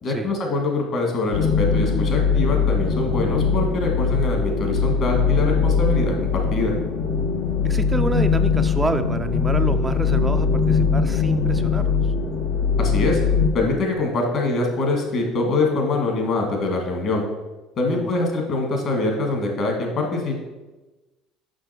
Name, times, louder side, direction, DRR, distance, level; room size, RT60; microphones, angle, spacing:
voice 1, 0.0-6.7 12.8-13.2 13.5-17.2 17.8-20.4, left 2 dB, 55° left, 1 dB, 2.2 m, -24 dB
sound 1, 1.3-13.5, left 5 dB, 80° left, 1.0 m, -21 dB
voice 2, 7.6-12.1 17.9-18.3, right 2 dB, 15° right, 8 dB, 0.4 m, -28 dB
6.3 x 5.9 x 4.5 m, 1.1 s
supercardioid pair, 80°, 0 cm